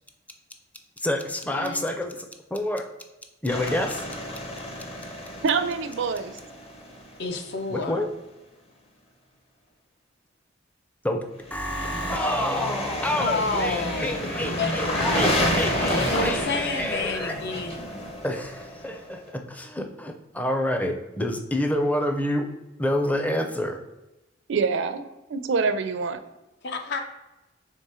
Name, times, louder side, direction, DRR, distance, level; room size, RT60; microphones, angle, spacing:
voice 1, 1.0-2.9 3.4-4.0 7.7-8.1 11.0-11.2 11.5-17.4 17.8-22.5 22.8-23.8, left 1 dB, 10° left, 5 dB, 0.5 m, -28 dB
voice 2, 1.5-1.8 7.2-8.0 13.2-14.8 15.9-17.8 26.6-27.0, left 3 dB, 60° left, 5 dB, 0.7 m, -29 dB
sound 1, 3.5-7.3 11.5-19.2, equal, 30° left, 0.8 m, -30 dB
voice 3, 5.4-6.4 24.5-25.0 25.3-26.2, right 5 dB, 65° right, 10 dB, 0.4 m, -25 dB
3.7 x 3.3 x 4.2 m, 1.0 s
head